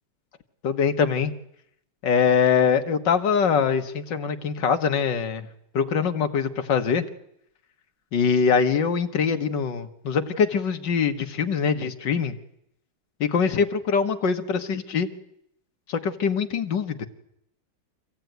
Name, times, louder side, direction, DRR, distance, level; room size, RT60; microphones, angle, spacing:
voice 1, 0.6-1.3 2.0-5.5 5.7-7.0 8.1-12.3 13.2-15.1 15.9-17.1, left 6 dB, 60° left, 8 dB, 1.8 m, -23 dB
25.5 x 16.0 x 9.2 m, 0.77 s
omnidirectional pair, 2.4 m